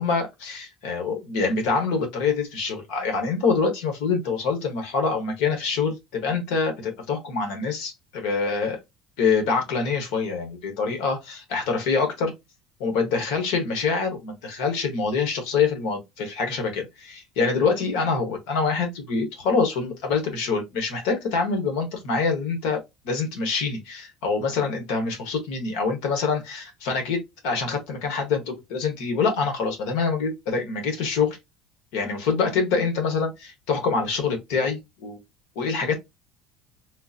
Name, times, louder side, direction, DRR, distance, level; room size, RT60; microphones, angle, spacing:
voice 1, 0.0-8.8 9.2-12.3 12.8-22.8 23.0-31.4 31.9-35.2 35.5-36.0, left 4 dB, 80° left, 1.2 m, -25 dB
3.8 x 2.5 x 2.7 m
cardioid pair, 150°, 0 cm